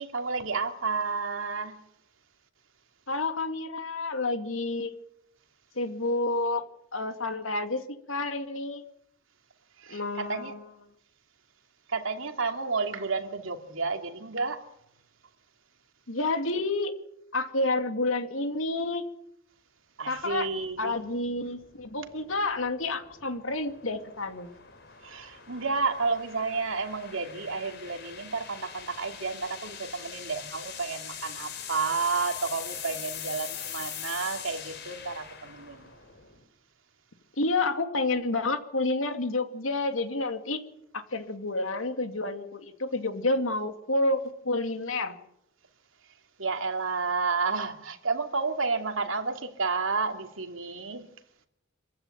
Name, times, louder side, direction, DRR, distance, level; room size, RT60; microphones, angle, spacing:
voice 1, 0.0-1.8 9.8-10.5 11.9-14.6 20.0-20.9 25.0-35.9 46.4-51.0, right 4 dB, 80° right, 2.9 m, -31 dB
voice 2, 3.1-4.9 5.8-6.6 6.9-8.8 9.9-10.6 16.1-16.9 17.3-19.0 20.1-20.5 20.8-24.5 37.4-40.6 40.9-45.2, left 2 dB, 90° left, 2.6 m, -29 dB
sound 1, 20.2-36.4, left 8 dB, 60° left, 3.9 m, -43 dB
26.5 x 15.0 x 9.3 m
head